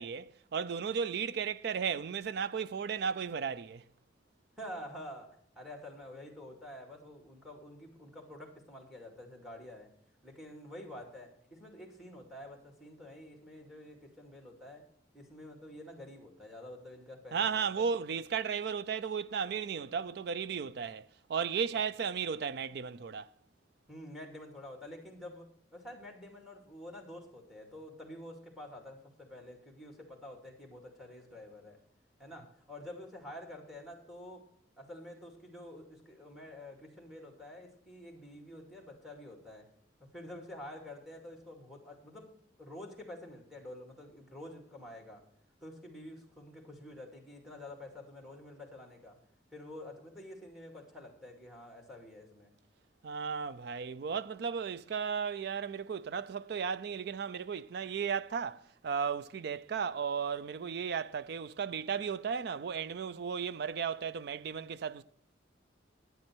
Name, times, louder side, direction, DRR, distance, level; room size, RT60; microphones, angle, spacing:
voice 1, 0.0-3.8 17.3-23.3 53.0-65.0, right 6 dB, 60° right, 0.4 m, -35 dB
voice 2, 4.6-9.9 10.2-14.9 15.1-17.9 23.9-31.8 32.2-34.4 34.8-39.7 40.1-45.2 45.6-49.2 49.5-52.5, left 1 dB, ahead, 2.3 m, -48 dB
10.5 x 9.5 x 4.4 m
head